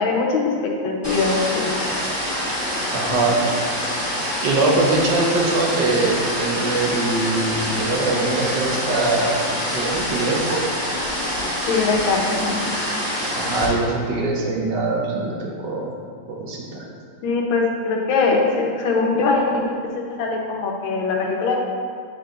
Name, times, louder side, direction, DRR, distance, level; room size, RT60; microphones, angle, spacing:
voice 1, 0.0-1.7 11.7-12.6 17.2-21.6, left 4 dB, 75° left, 0 dB, 1.6 m, -22 dB
sound 1, 1.0-13.7, equal, 5° right, 1.4 m, -25 dB
voice 2, 2.9-3.4 4.4-9.3 9.6-10.6 13.3-15.9 16.3-16.8, right 2 dB, 65° right, -2 dB, 1.4 m, -22 dB
7.6 x 4.7 x 3.7 m, 2.4 s
omnidirectional pair, 2.3 m